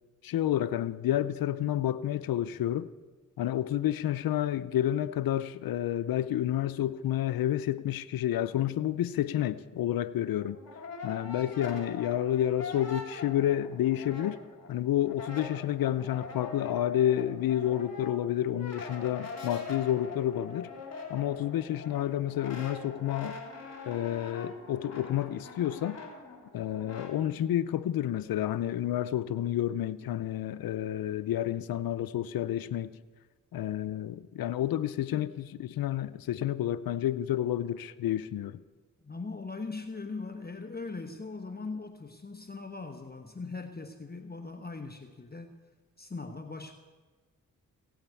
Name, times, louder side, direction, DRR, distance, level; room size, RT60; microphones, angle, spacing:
voice 1, 0.2-2.9 3.4-10.6 11.0-14.4 14.7-20.7 21.1-23.4 23.9-26.0 26.5-32.9 33.5-38.6, left 12 dB, 80° left, 0.6 m, -30 dB
Brass instrument, 10.3-14.7 15.0-27.1, left 4 dB, 45° left, 3.4 m, -43 dB
voice 2, 39.0-45.6 46.0-46.7, left 3 dB, 25° left, 1.2 m, -40 dB
16.5 x 8.9 x 8.3 m
cardioid pair, 50°, 34 cm